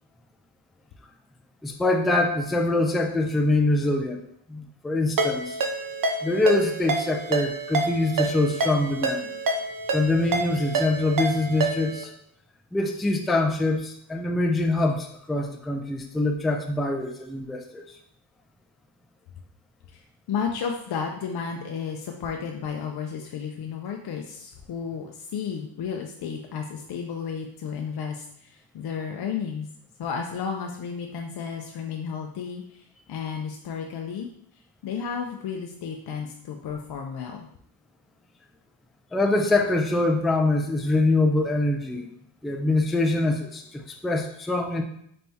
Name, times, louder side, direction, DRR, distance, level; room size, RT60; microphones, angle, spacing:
voice 1, 1.6-4.2 4.5-5.6 6.2-9.3 9.9-12.1 12.7-17.9 39.1-42.1 42.4-44.8, left 2 dB, ahead, 2 dB, 0.3 m, -24 dB
Ringtone, 5.2-12.0, right 3 dB, 45° right, 0.7 m, -28 dB
voice 2, 20.3-29.7 30.0-34.3 34.8-37.5, left 6 dB, 55° left, 2 dB, 0.5 m, -33 dB
4.3 x 3.4 x 2.7 m, 0.69 s
cardioid pair, 85°, 47 cm